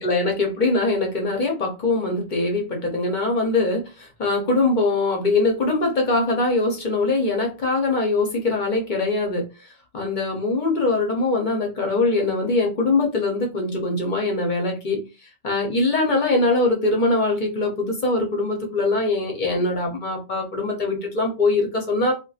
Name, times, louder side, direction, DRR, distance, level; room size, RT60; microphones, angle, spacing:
voice 1, 0.0-22.1, left 2 dB, 50° left, 1 dB, 0.7 m, -22 dB
2.8 x 2.3 x 2.3 m, 0.29 s
omnidirectional pair, 1.4 m